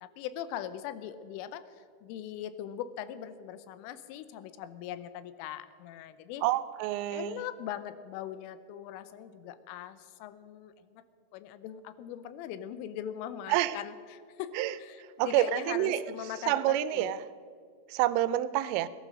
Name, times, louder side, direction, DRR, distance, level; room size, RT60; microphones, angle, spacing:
voice 1, 0.0-6.5 7.1-11.0 11.3-14.5 14.8-17.1, left 10 dB, 85° left, 13 dB, 3.3 m, -41 dB
voice 2, 6.4-7.4 13.5-13.8 14.6-14.7 15.2-16.0 16.5-17.2 17.9-18.9, right 14 dB, 85° right, 15 dB, 3.2 m, -28 dB
17.5 x 11.5 x 6.3 m, 2.2 s
omnidirectional pair, 5.6 m